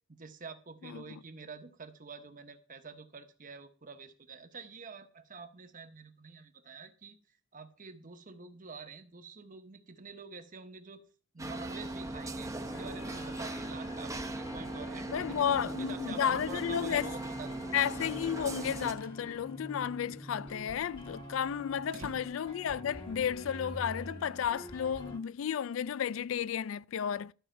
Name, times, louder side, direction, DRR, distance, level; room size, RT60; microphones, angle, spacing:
voice 1, 0.1-7.2 7.5-11.0 11.3-17.5 21.6-22.1, right 4 dB, 40° right, 1.1 m, -47 dB
voice 2, 0.8-1.2 15.1-17.1 17.7-27.3, left 8 dB, 70° left, 0.3 m, -33 dB
sound 1, 11.4-18.9, right 2 dB, 15° right, 0.8 m, -39 dB
sound 2, 12.6-25.2, equal, 25° left, 1.6 m, -47 dB
sound 3, 19.0-19.2 19.6-19.7 19.9-20.0 20.4-23.5, right 3 dB, 85° right, 1.1 m, -53 dB
12.5 x 6.4 x 4.5 m
head